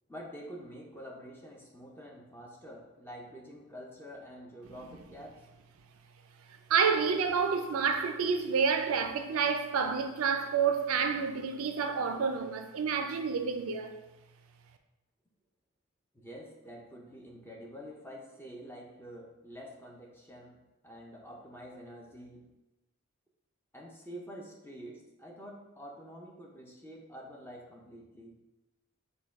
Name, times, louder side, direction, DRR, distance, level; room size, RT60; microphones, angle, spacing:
voice 1, 0.1-5.5 16.1-22.5 23.7-28.4, equal, 10° left, 0.6 m, -47 dB
voice 2, 6.7-13.9, right 6 dB, 75° right, 0.4 m, -29 dB
6.4 x 2.3 x 3.5 m
head